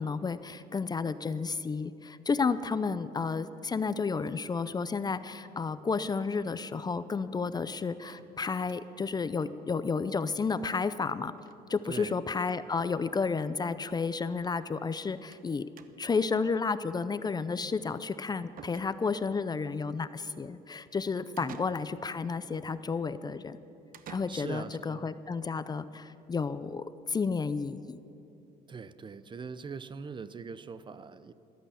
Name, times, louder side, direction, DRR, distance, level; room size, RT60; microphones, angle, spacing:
voice 1, 0.0-11.3 11.7-15.7 16.0-23.6 24.1-28.0, left 4 dB, 25° left, 14 dB, 0.5 m, -32 dB
sound 1, 8.0-9.1 9.4-9.5 9.8-9.9 10.1-10.2 11.4-11.6 11.9-12.2 13.1-13.2 13.5-13.6 15.3-15.5 15.8-16.2 18.0-18.1 18.6-19.3 21.4-22.2 23.9-24.8, right 8 dB, 55° right, 0.9 m, -51 dB
voice 2, 11.9-12.2 21.4-21.5 24.3-25.1 28.7-31.3, right 5 dB, 30° right, 14 dB, 0.6 m, -42 dB
14.0 x 12.5 x 8.3 m, 2.7 s
cardioid pair, 110°, 17 cm